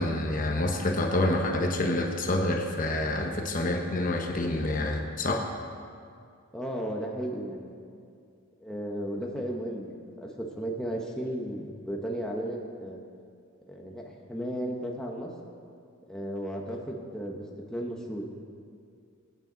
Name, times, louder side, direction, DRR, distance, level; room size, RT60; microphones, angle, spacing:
voice 1, 0.0-5.5, left 1 dB, 40° left, 2 dB, 1.1 m, -27 dB
voice 2, 6.5-7.8 8.6-13.0 13.7-15.3 16.1-17.4 17.7-18.2, right 1 dB, 5° left, -1 dB, 1.1 m, -34 dB
23.0 x 9.1 x 4.0 m, 2.3 s
head